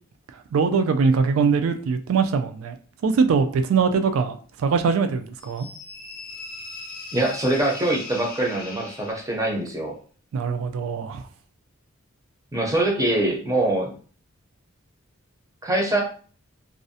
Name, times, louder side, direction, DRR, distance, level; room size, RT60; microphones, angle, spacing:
voice 1, 0.5-2.8 3.0-5.7 10.3-11.2, right 5 dB, 80° right, 0.3 m, -22 dB
sound 1, 5.4-9.6, left 3 dB, 45° left, 0.5 m, -39 dB
voice 2, 7.1-10.0 12.5-13.9 15.6-16.0, right 1 dB, 15° right, 0.5 m, -23 dB
2.4 x 2.0 x 2.6 m
head